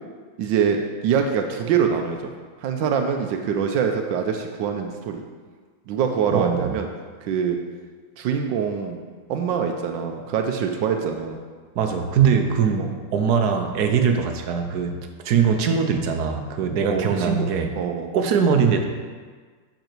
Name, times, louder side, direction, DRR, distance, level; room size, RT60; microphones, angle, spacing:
voice 1, 0.4-2.3 2.6-5.2 5.9-6.9 7.3-7.6 8.2-9.0 9.3-11.4 12.8-12.9 16.9-17.5 17.8-18.1, right 7 dB, 85° right, 4 dB, 1.3 m, -24 dB
voice 2, 6.3-6.7 11.7-17.8 18.1-18.8, right 6 dB, 65° right, 5 dB, 1.2 m, -21 dB
7.9 x 6.0 x 4.5 m, 1.5 s
omnidirectional pair, 2.0 m